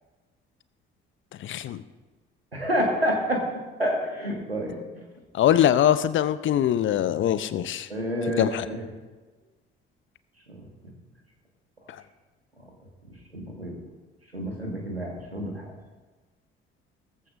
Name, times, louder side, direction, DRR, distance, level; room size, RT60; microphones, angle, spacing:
voice 1, 1.4-1.8 5.3-7.9 8.4-8.7, left 11 dB, 40° left, 14 dB, 0.7 m, -22 dB
voice 2, 2.5-3.4 3.8-4.8 7.9-8.8 10.5-10.6 13.3-13.7 14.3-15.7, equal, 90° right, 0 dB, 1.8 m, -28 dB
19.0 x 14.5 x 2.6 m, 1.3 s
figure-of-eight pair, 50°, 30 cm